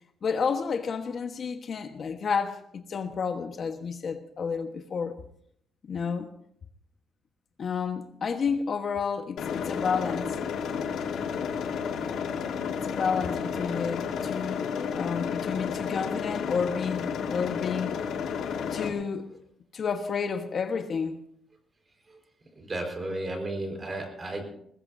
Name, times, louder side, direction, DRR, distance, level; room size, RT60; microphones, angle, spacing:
voice 1, 0.2-2.6 2.9-5.2 5.8-6.3 7.6-10.3 12.7-14.7 14.9-18.0 18.7-19.3 19.7-21.2, left 6 dB, 50° left, 1.3 m, -30 dB
sound 1, 9.4-18.9, left 6 dB, 80° left, 2.2 m, -31 dB
voice 2, 22.6-24.5, right 1 dB, 30° right, 4.6 m, -33 dB
20.5 x 20.5 x 2.7 m
cardioid pair, 110°, 0 cm